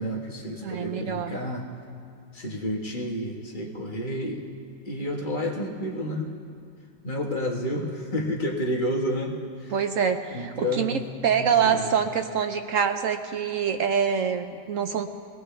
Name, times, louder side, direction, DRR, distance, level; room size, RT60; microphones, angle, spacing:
voice 1, 0.0-1.7 2.3-4.4 4.8-6.3 7.0-9.7 10.3-11.0 11.4-11.9, equal, 30° left, -2 dB, 1.3 m, -30 dB
voice 2, 0.6-1.3 9.7-15.1, right 7 dB, 70° right, 7 dB, 0.7 m, -25 dB
21.5 x 17.5 x 3.3 m, 2.5 s
omnidirectional pair, 1.9 m